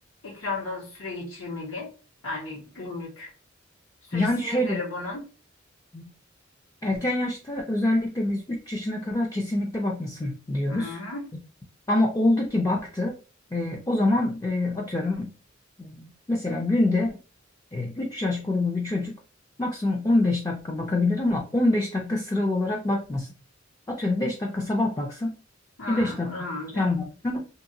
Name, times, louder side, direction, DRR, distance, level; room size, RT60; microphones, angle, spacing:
voice 1, 0.2-1.9 2.2-3.3 4.1-5.3 10.7-11.3 25.8-26.9, left 2 dB, 85° left, -3 dB, 1.5 m, -35 dB
voice 2, 4.1-4.8 5.9-6.1 6.8-10.9 11.9-13.1 13.5-15.3 15.8-17.2 17.7-19.2 19.6-23.3 23.9-25.3 25.9-26.3 26.7-27.4, left 2 dB, 15° left, 0 dB, 0.4 m, -25 dB
2.8 x 2.8 x 2.6 m, 0.35 s
head